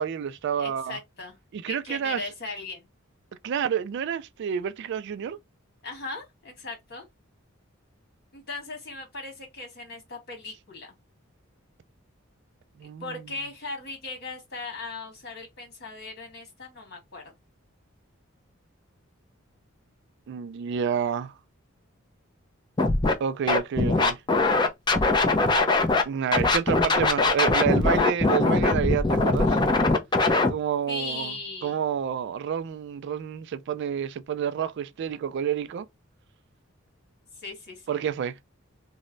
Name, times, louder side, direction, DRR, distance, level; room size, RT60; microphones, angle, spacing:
voice 1, 0.0-1.0 1.5-2.2 3.4-5.4 12.8-13.0 20.3-21.3 23.2-24.2 26.1-29.6 30.5-31.3 31.6-35.9 37.9-38.4, right 8 dB, 55° right, 0.3 m, -29 dB
voice 2, 0.5-1.4 1.7-2.9 5.8-7.0 8.3-10.9 13.0-17.2 30.9-31.8 37.3-38.0, left 3 dB, 50° left, 1.7 m, -38 dB
Scratching (performance technique), 22.8-23.1 23.5-26.0 26.3-30.5, left 3 dB, 20° left, 0.5 m, -21 dB
3.1 x 2.1 x 3.7 m
head